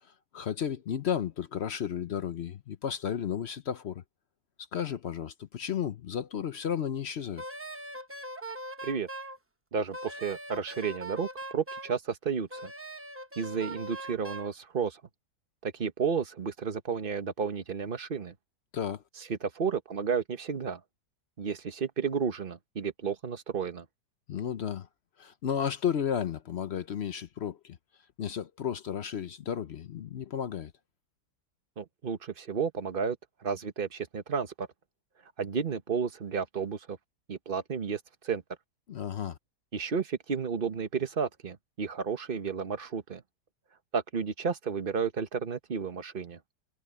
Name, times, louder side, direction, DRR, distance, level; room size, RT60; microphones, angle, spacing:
voice 1, 0.3-4.0 4.7-7.4 18.7-19.0 24.3-24.9 25.2-27.8 28.2-30.7 38.9-39.4, left 8 dB, 60° left, 0.7 m, -33 dB
Wind instrument woodwind instrument, 7.4-9.4 9.9-12.0 12.5-14.5, right 1 dB, 20° right, 0.4 m, -41 dB
voice 2, 9.7-12.7 13.4-15.0 15.6-18.3 19.2-20.8 21.4-23.8 31.8-33.2 33.4-34.7 35.4-37.0 37.3-38.4 39.7-43.2 43.9-46.4, right 6 dB, 35° right, 1.2 m, -32 dB
omnidirectional pair, 1.8 m